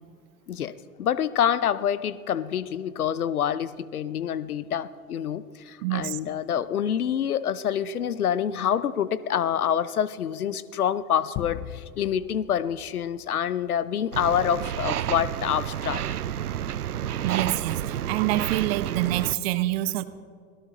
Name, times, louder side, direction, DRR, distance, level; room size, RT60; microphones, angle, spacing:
voice 1, 0.5-16.0, left 9 dB, 75° left, 17 dB, 0.7 m, -27 dB
voice 2, 5.8-6.2 17.2-20.0, right 16 dB, 45° right, 14 dB, 0.9 m, -26 dB
sound 1, 11.4-13.9, left 13 dB, 30° left, 0.6 m, -39 dB
sound 2, 14.1-19.3, right 10 dB, 80° right, 0.6 m, -30 dB
24.0 x 17.5 x 3.0 m, 2.1 s
figure-of-eight pair, 90°, 44 cm